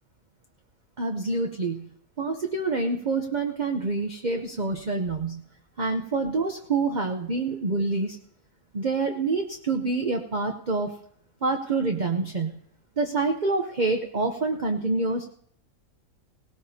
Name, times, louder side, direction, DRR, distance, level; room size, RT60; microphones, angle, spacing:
voice 1, 1.0-1.9 2.2-5.4 5.8-8.2 8.7-10.9 11.4-12.6 13.0-15.3, right 3 dB, 40° right, 3 dB, 0.8 m, -27 dB
18.5 x 17.5 x 2.8 m, 0.65 s
omnidirectional pair, 1.5 m